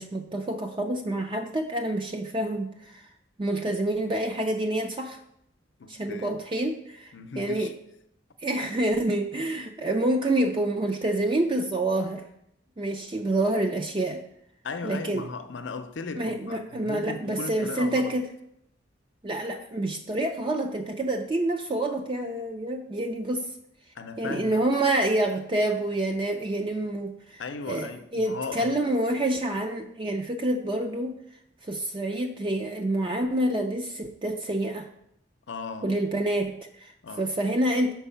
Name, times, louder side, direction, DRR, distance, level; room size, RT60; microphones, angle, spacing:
voice 1, 0.0-3.0 3.4-5.2 5.9-7.7 8.4-12.2 12.8-14.2 14.8-15.3 16.1-18.3 19.2-23.5 24.2-27.4 27.7-31.1 31.6-34.9 35.8-36.9 37.2-37.9, right 1 dB, 25° right, 0.5 m, -27 dB
voice 2, 5.8-6.4 7.1-7.7 14.6-18.2 24.0-24.6 27.4-28.8 35.5-36.0 37.0-37.3, left 4 dB, 80° left, 0.6 m, -37 dB
6.1 x 4.6 x 5.6 m
head